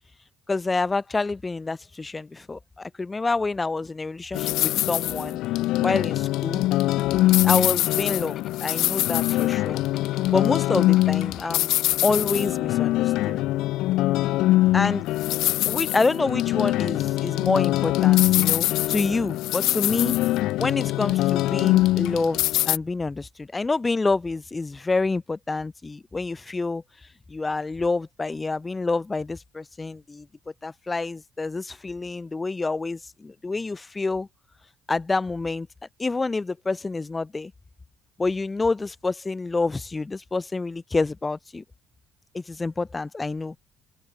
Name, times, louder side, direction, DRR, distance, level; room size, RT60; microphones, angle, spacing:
voice 1, 0.5-5.4 5.8-6.7 7.4-9.8 10.3-11.7 12.0-13.4 14.7-15.0 15.7-20.2 20.6-26.8 27.3-30.3 30.6-34.3 34.9-35.7 36.0-37.5 38.2-41.6 42.3-43.6, left 3 dB, 20° left, 3.1 m, -27 dB
sound 1, 4.3-22.8, left 16 dB, 75° left, 0.4 m, -23 dB
sound 2, 7.2-12.3, left 9 dB, 50° left, 6.9 m, -48 dB
cardioid pair, 105°, 0 cm